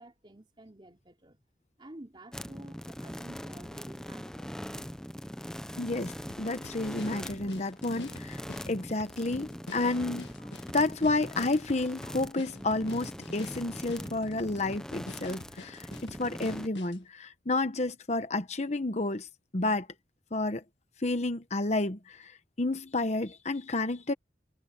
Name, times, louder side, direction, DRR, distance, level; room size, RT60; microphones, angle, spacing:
voice 1, 0.0-1.4 1.8-4.3, right 1 dB, 25° right, 3.1 m, -50 dB
sound 1, 2.3-16.7, equal, 5° left, 0.7 m, -42 dB
voice 2, 5.8-8.4 8.7-10.3 10.7-19.3 19.5-19.9 20.3-20.6 21.0-24.1, left 2 dB, 40° left, 1.0 m, -30 dB
sound 2, 6.3-17.0, left 2 dB, 90° left, 1.9 m, -47 dB
head